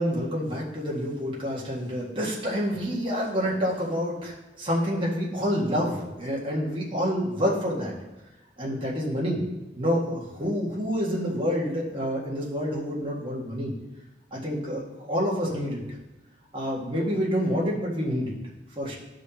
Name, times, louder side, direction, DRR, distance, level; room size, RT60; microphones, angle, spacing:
voice 1, 0.0-7.9 8.6-9.4 9.8-13.7 14.3-15.8 16.5-18.3 18.8-18.9, equal, 30° right, -5 dB, 1.8 m, -28 dB
12.5 x 5.0 x 2.9 m, 1.1 s
head